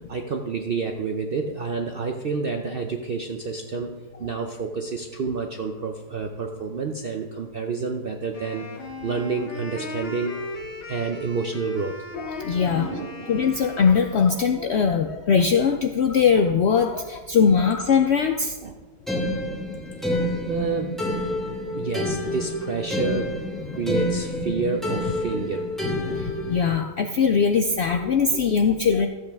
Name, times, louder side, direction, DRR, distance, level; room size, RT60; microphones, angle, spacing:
voice 1, 0.1-8.7 9.0-10.4 10.9-12.0 12.7-13.3 18.6-18.7 19.2-19.5 20.0-20.9 21.5-23.4 23.8-25.7 26.8-26.9, right 4 dB, 65° right, 4 dB, 0.5 m, -29 dB
Wind instrument woodwind instrument, 8.3-14.5, left 3 dB, 40° left, 1.1 m, -37 dB
voice 2, 12.2-12.9 13.3-18.6 19.1-19.2 23.7-23.8 24.6-24.7 26.0-29.1, left 6 dB, 70° left, 6 dB, 0.6 m, -21 dB
sound 1, 19.1-26.7, left 1 dB, ahead, 1.3 m, -28 dB
13.5 x 7.9 x 3.5 m, 1.3 s
omnidirectional pair, 1.7 m